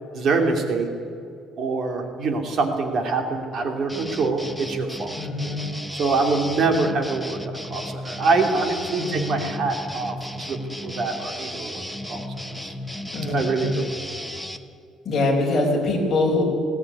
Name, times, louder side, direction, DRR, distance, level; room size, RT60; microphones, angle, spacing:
voice 1, 0.1-0.9 1.6-5.1 5.9-7.4 7.6-12.2 12.6-12.7 13.3-13.9, right 3 dB, 45° right, 4 dB, 2.6 m, -24 dB
sound 1, 3.9-14.6, left 1 dB, ahead, 1.0 m, -35 dB
voice 2, 5.1-5.7 9.0-9.5 13.1-13.8 15.0-16.4, left 2 dB, 30° left, -1 dB, 5.1 m, -24 dB
19.5 x 17.5 x 9.7 m, 2.4 s
cardioid pair, 160°, 0 cm